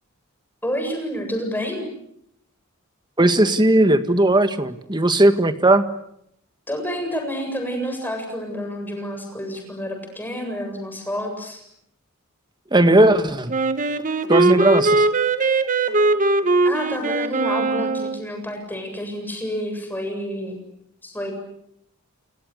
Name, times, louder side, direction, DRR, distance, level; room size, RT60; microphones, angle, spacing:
voice 1, 0.6-1.8 6.7-11.6 16.6-20.6 21.0-21.3, equal, 10° left, 4 dB, 7.7 m, -29 dB
voice 2, 3.2-5.8 12.7-13.5 14.3-15.1, right 1 dB, 20° right, 9 dB, 1.8 m, -17 dB
Wind instrument woodwind instrument, 13.5-18.2, right 3 dB, 35° right, 1.8 m, -20 dB
30.0 x 29.5 x 6.7 m, 0.74 s
head